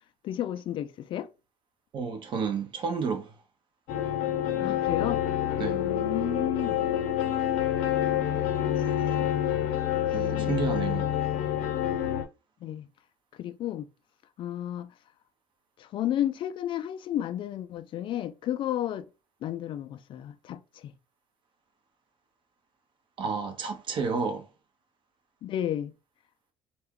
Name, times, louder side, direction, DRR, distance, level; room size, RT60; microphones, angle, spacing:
voice 1, 0.2-1.3 4.6-5.2 5.7-6.8 8.6-9.5 10.3-11.1 12.6-12.9 13.4-13.9 14.4-14.9 15.8-19.0 19.4-20.9 25.4-25.9, left 11 dB, 45° left, 0.4 m, -33 dB
voice 2, 1.9-3.3 5.6-5.8 10.1-11.1 23.2-24.4, right 5 dB, 45° right, 0.9 m, -31 dB
sound 1, 3.9-12.2, left 10 dB, 75° left, 0.8 m, -27 dB
4.3 x 2.3 x 3.6 m
cardioid pair, 140°, 12 cm